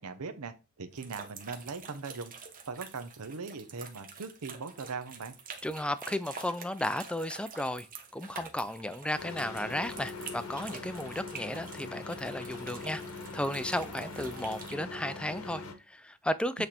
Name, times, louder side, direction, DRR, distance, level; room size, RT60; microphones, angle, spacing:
voice 1, 0.0-2.3 2.7-5.3 16.6-16.7, right 4 dB, 80° right, 0.8 m, -40 dB
sound 1, 1.0-14.7, right 5 dB, 40° right, 1.1 m, -47 dB
voice 2, 5.6-7.9 8.1-16.7, left 1 dB, 5° left, 0.3 m, -34 dB
sound 2, 9.2-15.7, left 3 dB, 70° left, 1.0 m, -42 dB
8.2 x 3.3 x 4.3 m
head